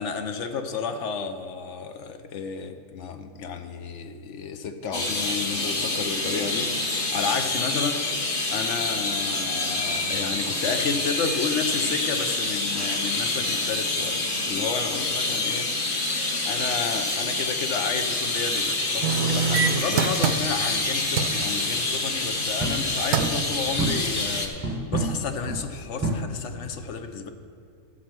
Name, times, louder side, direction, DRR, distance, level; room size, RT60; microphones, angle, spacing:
voice 1, 0.0-8.2 8.5-16.1 16.4-27.3, left 5 dB, 60° left, 8 dB, 0.8 m, -32 dB
sound 1, 4.9-24.5, left 2 dB, 35° left, 1.1 m, -27 dB
sound 2, 19.0-20.8 21.2-21.4 22.7-22.8 23.1-23.5 24.0-24.1, right 6 dB, 75° right, 1.1 m, -24 dB
sound 3, 22.6-24.3 24.6-26.1, right 2 dB, 10° right, 0.9 m, -29 dB
15.5 x 7.3 x 4.5 m, 2.5 s
omnidirectional pair, 1.7 m